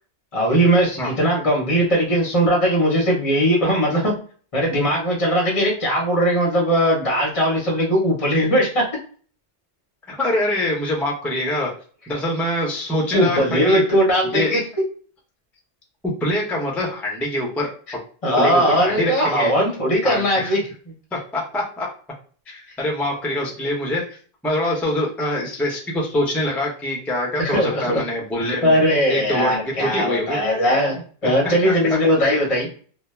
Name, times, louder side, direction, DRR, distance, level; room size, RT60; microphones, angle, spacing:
voice 1, 0.3-4.2 4.5-8.8 13.1-14.6 18.2-20.6 27.4-27.9 28.6-32.7, equal, 35° left, -2 dB, 0.6 m, -19 dB
voice 2, 10.1-11.7 12.1-13.8 14.2-14.5 16.2-17.7 18.4-19.5 20.0-20.5 21.1-21.9 22.5-24.2 24.4-28.8 29.1-30.4 31.2-32.0, left 1 dB, ahead, -2 dB, 0.3 m, -24 dB
2.2 x 2.0 x 3.0 m, 0.43 s
omnidirectional pair, 1.1 m